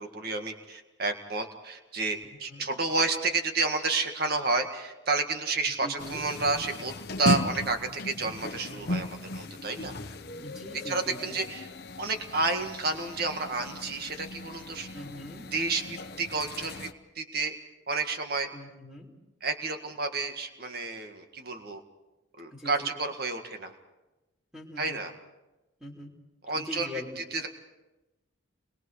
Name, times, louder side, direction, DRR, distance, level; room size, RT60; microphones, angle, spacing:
voice 1, 0.0-9.9 10.9-11.7 12.0-14.9 15.5-16.9 17.2-17.5 17.9-18.5 19.4-21.8 22.4-23.7 24.8-25.1 26.4-26.9 27.2-27.5, right 3 dB, 50° right, 5 dB, 1.8 m, -30 dB
voice 2, 2.5-2.8 5.8-6.2 10.4-11.4 14.9-15.5 18.5-19.1 22.5-22.9 24.5-25.0 25.8-26.1 26.5-27.2, left 1 dB, 5° right, -7 dB, 3.2 m, -42 dB
sound 1, 6.0-16.9, left 2 dB, 55° left, 1.0 m, -36 dB
30.0 x 22.0 x 4.9 m, 1.0 s
head